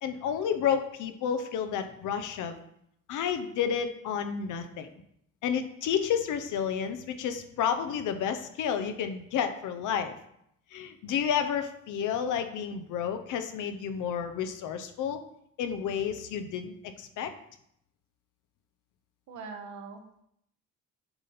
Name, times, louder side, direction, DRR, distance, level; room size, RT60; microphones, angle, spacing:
voice 1, 0.0-2.6 3.1-4.9 5.4-10.1 10.7-15.2 15.6-17.3, left 8 dB, 85° left, 8 dB, 0.7 m, -31 dB
voice 2, 19.3-20.2, right 4 dB, 70° right, 4 dB, 1.2 m, -42 dB
6.9 x 4.2 x 4.0 m, 0.74 s
cardioid pair, 90°, 30 cm